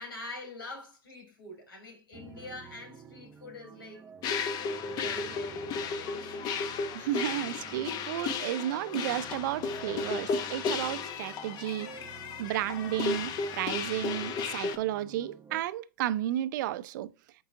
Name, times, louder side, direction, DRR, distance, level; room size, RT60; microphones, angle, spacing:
voice 1, 0.0-4.1 4.8-6.5, left 2 dB, 90° left, 3.6 m, -45 dB
sound 1, 2.1-15.6, right 5 dB, 15° right, 0.8 m, -50 dB
sound 2, 4.2-14.8, left 5 dB, 35° left, 0.8 m, -34 dB
voice 2, 6.9-11.9 12.4-17.1, right 13 dB, 60° right, 0.5 m, -33 dB
7.5 x 4.7 x 2.7 m
hypercardioid pair, 115°, 12 cm